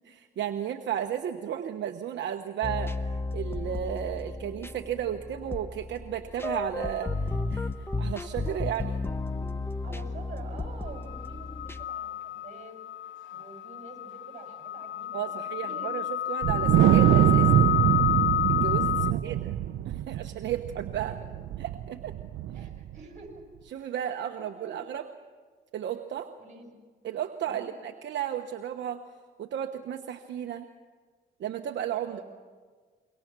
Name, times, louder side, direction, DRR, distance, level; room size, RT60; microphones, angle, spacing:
voice 1, 0.0-2.9 3.3-7.7 8.0-9.0 15.1-17.6 18.5-18.9 19.2-19.5 19.9-21.2 21.6-22.2 23.7-25.1 25.7-26.3 27.0-29.0 29.4-30.7 31.4-32.2, right 10 dB, 65° right, 5 dB, 1.1 m, -34 dB
sound 1, 2.6-11.9, left 3 dB, 10° left, 1.0 m, -34 dB
sound 2, 6.8-7.2 10.9-19.1, left 11 dB, 75° left, 0.6 m, -30 dB
voice 2, 9.5-12.7 13.3-16.1 18.9-19.4 21.1-21.2 22.5-23.4 23.9-24.8 26.4-26.7 27.4-27.7 32.0-32.2, right 4 dB, 35° right, 2 dB, 7.3 m, -47 dB
Wind, 16.4-22.9, right 13 dB, 85° right, 0.7 m, -24 dB
26.5 x 23.5 x 6.1 m, 1.5 s
cardioid pair, 90°, 20 cm